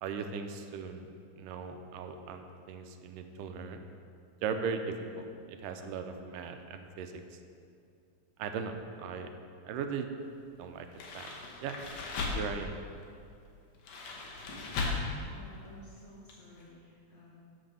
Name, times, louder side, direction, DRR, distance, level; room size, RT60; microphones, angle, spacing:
voice 1, 0.0-1.1 1.4-3.8 4.4-7.4 8.4-8.7 9.0-9.3 9.7-10.1 10.6-10.9 11.1-11.3 11.6-11.8 12.3-12.7, right 6 dB, 85° right, 6 dB, 2.2 m, -38 dB
sound 1, 10.9-12.7 13.8-15.2 15.5-15.7 16.3-16.4 16.6-16.7, left 4 dB, 65° left, 2.2 m, -36 dB
voice 2, 15.2-17.3, left 1 dB, 45° left, -9 dB, 2.0 m, -53 dB
10.5 x 4.4 x 6.8 m, 2.4 s
omnidirectional pair, 3.8 m